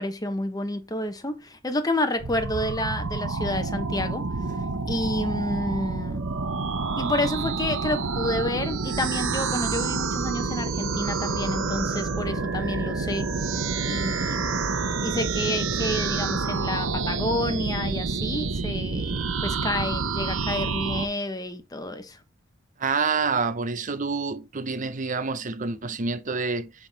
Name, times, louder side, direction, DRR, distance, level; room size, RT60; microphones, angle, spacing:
voice 1, 0.0-4.2 4.9-6.2 7.0-13.3 13.8-14.6 15.0-22.2, left 1 dB, 20° left, 0.9 m, -29 dB
sound 1, 2.2-21.1, right 4 dB, 75° right, 0.9 m, -28 dB
voice 2, 4.4-4.8 22.8-26.7, right 4 dB, 40° right, 0.7 m, -28 dB
7.7 x 3.6 x 4.0 m
head